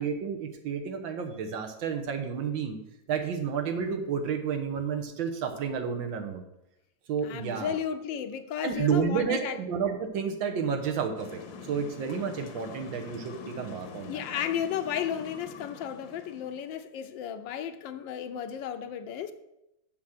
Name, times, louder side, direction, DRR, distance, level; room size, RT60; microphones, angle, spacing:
voice 1, 0.0-2.8 3.1-6.4 7.1-7.8 8.6-11.4 11.7-14.2, right 6 dB, 85° right, 5 dB, 1.8 m, -31 dB
voice 2, 7.2-9.6 14.0-19.3, left 9 dB, 80° left, 9 dB, 1.4 m, -34 dB
sound 1, 11.2-16.7, left 5 dB, 65° left, 1.3 m, -45 dB
7.1 x 6.3 x 6.5 m, 0.87 s
omnidirectional pair, 2.0 m